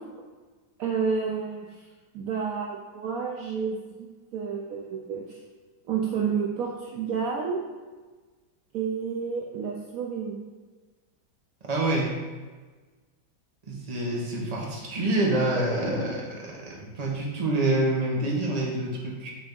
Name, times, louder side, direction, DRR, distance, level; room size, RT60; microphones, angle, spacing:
voice 1, 0.8-1.6 2.1-4.1 4.3-5.4 5.9-7.6 8.7-10.4, right 6 dB, 70° right, -1 dB, 0.8 m, -30 dB
voice 2, 11.7-12.2 13.7-19.3, right 2 dB, 25° right, -3 dB, 1.0 m, -27 dB
6.3 x 3.5 x 5.3 m, 1.3 s
omnidirectional pair, 2.2 m